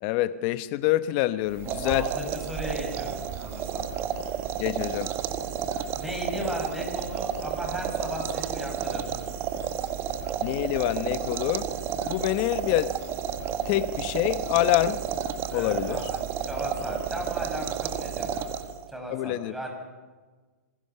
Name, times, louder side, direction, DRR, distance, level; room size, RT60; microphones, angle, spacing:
voice 1, 0.0-2.0 4.6-5.1 10.4-11.7 12.0-12.9 13.7-15.0 15.5-16.0 19.1-19.5, left 15 dB, 35° left, 13 dB, 0.9 m, -26 dB
sound 1, 1.5-18.9, right 9 dB, 25° right, 1.4 m, -31 dB
voice 2, 1.8-3.8 5.7-9.2 15.5-18.5 18.9-19.7, left 1 dB, 5° right, 1 dB, 6.2 m, -36 dB
27.5 x 21.0 x 5.8 m, 1.3 s
hypercardioid pair, 140°, 9 cm